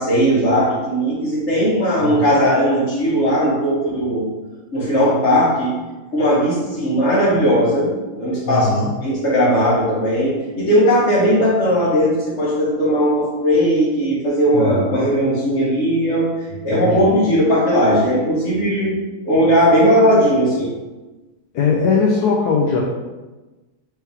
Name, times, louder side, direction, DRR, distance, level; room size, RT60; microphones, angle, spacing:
voice 1, 0.0-4.3 4.7-5.7 6.1-8.7 9.0-16.3 16.6-20.7, equal, 40° left, -6 dB, 1.2 m, -17 dB
voice 2, 2.0-2.4 8.5-8.9 14.5-15.0 16.7-17.1 21.5-22.8, left 4 dB, 70° left, -2 dB, 1.0 m, -20 dB
4.4 x 3.4 x 3.4 m, 1.2 s
omnidirectional pair, 2.2 m